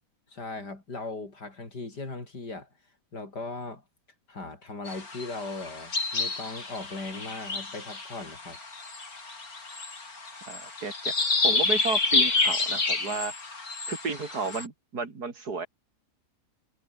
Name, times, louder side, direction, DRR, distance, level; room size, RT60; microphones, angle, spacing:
voice 1, 0.3-2.7 3.1-3.8 4.3-8.6, left 3 dB, 85° left, 5.5 m, -38 dB
sound 1, 4.9-14.7, left 3 dB, 60° left, 4.2 m, -29 dB
voice 2, 10.5-11.1 11.4-13.3 13.9-15.7, right 4 dB, 70° right, 3.4 m, -32 dB
omnidirectional pair, 1.7 m